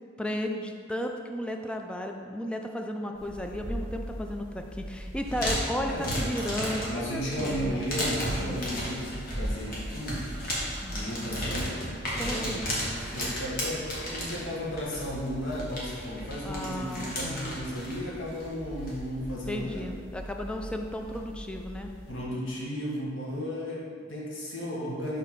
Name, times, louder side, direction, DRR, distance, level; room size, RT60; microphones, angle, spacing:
voice 1, 0.2-7.8 8.4-8.6 10.8-11.0 12.2-12.6 16.4-17.6 19.5-21.9, left 1 dB, 5° left, 3 dB, 0.3 m, -34 dB
sound 1, 3.1-22.2, equal, 50° left, 1.4 m, -35 dB
voice 2, 5.8-6.1 6.9-10.3 10.9-19.9 22.1-25.2, equal, 85° left, -5 dB, 1.3 m, -34 dB
5.9 x 3.6 x 4.5 m, 2.2 s
head